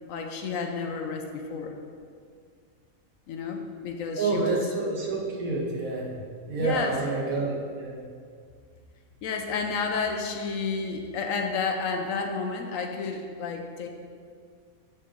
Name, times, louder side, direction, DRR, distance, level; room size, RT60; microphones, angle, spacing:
voice 1, 0.1-1.8 3.3-4.6 6.6-7.0 9.2-13.9, left 5 dB, 70° left, 3 dB, 1.1 m, -31 dB
voice 2, 4.2-6.1 6.5-8.0, right 3 dB, 75° right, -2 dB, 1.6 m, -28 dB
7.5 x 5.5 x 3.7 m, 2.1 s
omnidirectional pair, 1.5 m